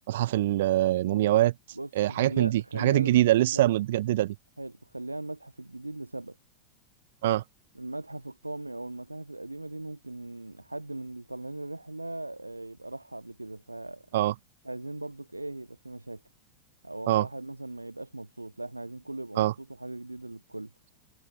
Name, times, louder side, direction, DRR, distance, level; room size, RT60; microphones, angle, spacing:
voice 1, 0.1-1.5 1.9-4.3 7.2-7.4 14.1-14.3 17.1-17.3 19.4-19.5, right 14 dB, 55° right, 1.4 m, -24 dB
voice 2, 1.8-3.2 3.5-3.6 4.6-6.4 7.8-14.1 14.6-16.2 16.8-20.7, right 2 dB, 85° right, 3.5 m, -39 dB
figure-of-eight pair, 90°, 0 cm